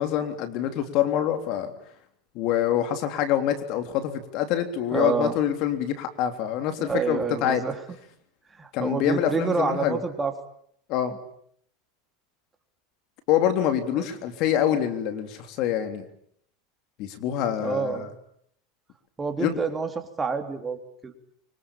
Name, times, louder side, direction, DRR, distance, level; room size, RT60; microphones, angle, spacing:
voice 1, 0.0-1.7 2.4-7.6 8.7-10.0 10.9-11.1 13.3-16.1 17.0-18.1 19.4-19.6, left 10 dB, 55° left, 8 dB, 3.4 m, -25 dB
voice 2, 4.9-5.3 6.8-7.8 8.5-10.3 14.0-14.1 17.6-18.1 19.2-21.1, right 5 dB, 20° right, 6 dB, 3.4 m, -28 dB
25.0 x 24.0 x 8.9 m, 0.69 s
hypercardioid pair, 105°, 0 cm